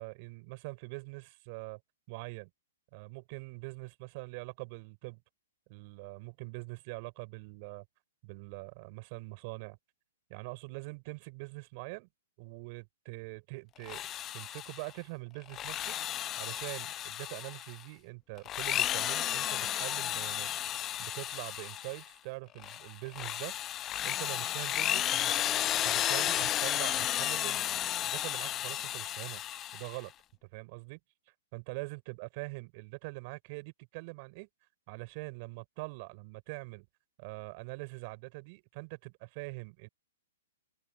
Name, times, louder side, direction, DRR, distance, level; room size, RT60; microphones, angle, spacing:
voice 1, 0.0-1.8 2.1-2.5 2.9-5.2 5.7-7.8 8.2-9.8 10.3-12.1 12.4-16.0 16.4-20.5 21.0-23.6 24.0-25.5 25.8-29.4 29.7-30.1 30.4-31.0 31.5-34.5 34.9-36.9 37.2-39.9, right 28 dB, 40° right, 4.7 m, -43 dB
Drill, 13.8-14.9 15.4-17.8 18.4-22.1 22.6-30.0, left 12 dB, 25° left, 0.7 m, -33 dB
open air
hypercardioid pair, 145°, 0 cm